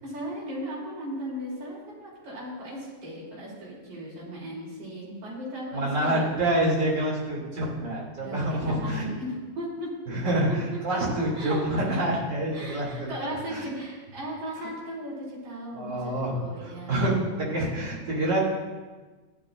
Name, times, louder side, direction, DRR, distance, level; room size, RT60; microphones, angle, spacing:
voice 1, 0.0-6.3 8.2-10.0 10.5-11.0 11.3-12.0 12.5-17.2, equal, 80° right, -6 dB, 4.9 m, -37 dB
voice 2, 5.7-9.1 10.1-13.1 13.5-13.7 15.7-18.4, right 1 dB, 35° right, -5 dB, 3.3 m, -27 dB
15.0 x 11.0 x 2.6 m, 1.3 s
omnidirectional pair, 3.3 m